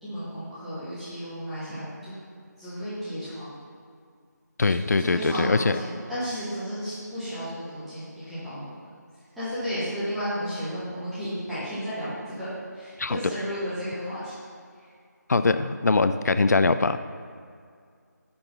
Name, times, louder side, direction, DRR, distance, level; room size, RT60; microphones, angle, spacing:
voice 1, 0.0-2.1 2.6-3.5 4.7-8.7 9.4-14.5, equal, ahead, -15 dB, 0.5 m, -33 dB
voice 2, 4.6-5.8 13.0-13.2 15.3-17.0, left 3 dB, 65° left, 11 dB, 0.4 m, -22 dB
10.0 x 3.9 x 5.3 m, 2.2 s
figure-of-eight pair, 170°, 10 cm